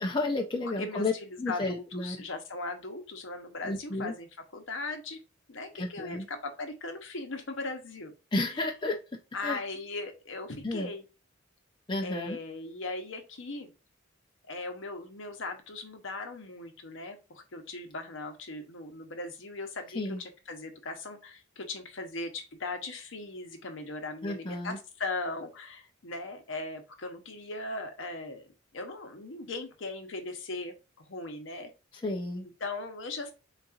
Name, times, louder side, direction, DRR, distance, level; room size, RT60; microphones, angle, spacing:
voice 1, 0.0-1.1 1.4-2.2 3.6-4.1 5.7-6.3 8.3-9.0 9.4-9.6 10.6-10.9 11.9-12.4 19.9-20.2 24.2-24.8 32.0-32.5, left 2 dB, 20° left, 1 dB, 0.6 m, -31 dB
voice 2, 0.6-5.2 5.5-8.1 8.4-8.7 9.3-11.0 12.0-13.7 14.5-28.5 28.7-30.7 31.1-31.7 32.6-33.3, left 3 dB, 60° left, 6 dB, 0.8 m, -38 dB
4.2 x 4.0 x 2.4 m, 0.29 s
head